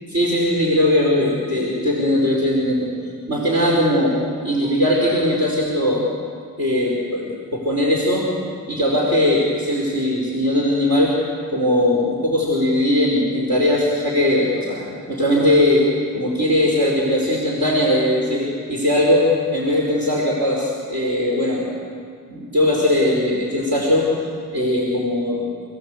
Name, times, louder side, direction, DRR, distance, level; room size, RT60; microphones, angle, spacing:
voice 1, 0.1-2.9 3.3-4.2 4.4-6.0 6.6-8.3 8.7-11.1 11.5-15.9 16.1-21.7 22.3-24.1 24.5-25.4, left 1 dB, 60° right, -4 dB, 4.8 m, -19 dB
29.0 x 16.5 x 8.1 m, 2.2 s
wide cardioid pair, 145°, 33 cm